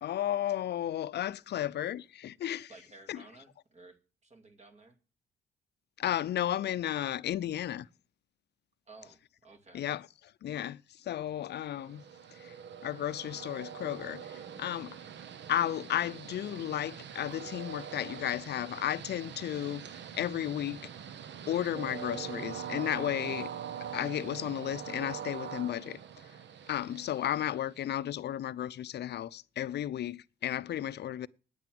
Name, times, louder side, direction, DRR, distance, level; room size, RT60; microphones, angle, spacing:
voice 1, 0.0-2.7 3.1-3.2 6.0-7.9 9.7-10.1 10.4-12.0 12.4-12.5 12.8-15.0 15.5-20.9 21.5-23.5 23.9-26.0 26.7-31.3, left 11 dB, 60° left, 0.6 m, -33 dB
voice 2, 2.7-4.0 4.2-5.0 8.9-9.9, right 3 dB, 35° right, 2.4 m, -55 dB
Train, 11.4-28.1, right 8 dB, 65° right, 1.0 m, -43 dB
9.5 x 9.0 x 7.7 m
cardioid pair, 90°, 20 cm